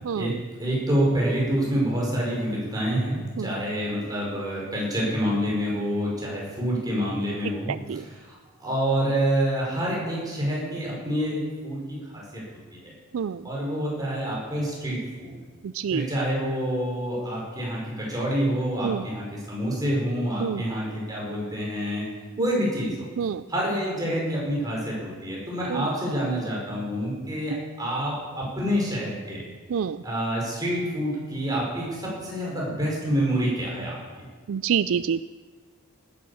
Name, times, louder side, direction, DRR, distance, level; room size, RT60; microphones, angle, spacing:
voice 1, 0.0-0.4 3.4-3.5 7.9-8.0 13.1-13.4 15.6-16.0 18.8-19.1 20.4-20.6 23.2-23.4 25.7-25.9 27.5-27.6 29.7-30.0 34.5-35.3, right 7 dB, 65° right, 14 dB, 0.3 m, -27 dB
voice 2, 0.6-8.3 8.6-11.8 12.1-12.4 12.7-12.8 13.4-15.4 15.9-22.0 22.4-22.9 23.5-29.4 30.0-34.0, equal, 15° right, -4 dB, 5.4 m, -27 dB
16.5 x 11.0 x 7.1 m, 1.5 s
head